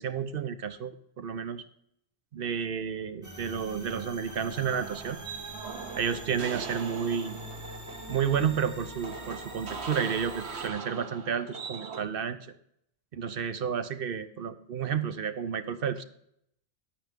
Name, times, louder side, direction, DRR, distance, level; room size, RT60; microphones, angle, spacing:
voice 1, 0.0-1.6 2.3-5.2 5.9-7.4 8.1-12.4 13.1-16.0, right 7 dB, 65° right, 11 dB, 0.8 m, -31 dB
sound 1, 3.2-10.7, right 1 dB, 15° right, 1.2 m, -44 dB
sound 2, 4.3-12.0, right 5 dB, 85° right, 1.2 m, -41 dB
10.5 x 9.0 x 3.6 m, 0.73 s
omnidirectional pair, 1.1 m